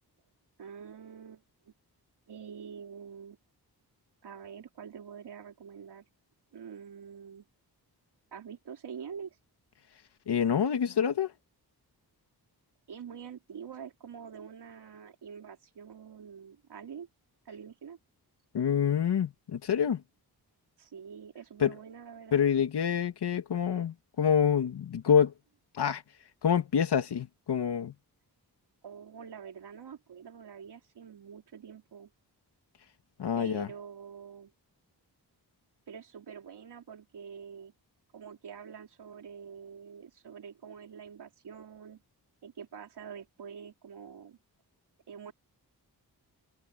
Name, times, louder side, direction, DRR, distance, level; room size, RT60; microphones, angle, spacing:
voice 1, 0.6-1.7 2.3-3.4 4.2-6.1 6.5-7.5 8.3-9.4 12.9-17.1 17.5-18.0 20.8-22.5 28.8-32.1 33.4-34.5 35.9-37.7 38.1-42.0 42.4-44.4 45.1-45.3, right 7 dB, 85° right, 3.9 m, -46 dB
voice 2, 10.3-11.3 18.5-20.0 21.6-21.7 22.3-25.3 25.7-26.0 26.4-27.9 33.2-33.7, left 8 dB, 90° left, 2.5 m, -27 dB
wide cardioid pair, 110°, 39 cm